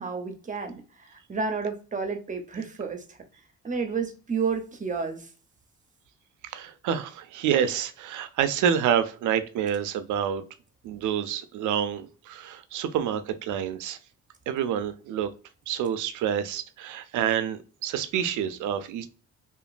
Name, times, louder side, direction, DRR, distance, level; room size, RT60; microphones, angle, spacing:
voice 1, 0.0-3.0 3.6-5.3, right 5 dB, 25° right, 0.7 m, -31 dB
voice 2, 6.4-10.4 10.8-14.0 14.5-15.3 15.7-19.1, right 9 dB, 80° right, 0.5 m, -28 dB
2.9 x 2.5 x 2.4 m
cardioid pair, 90°, 30 cm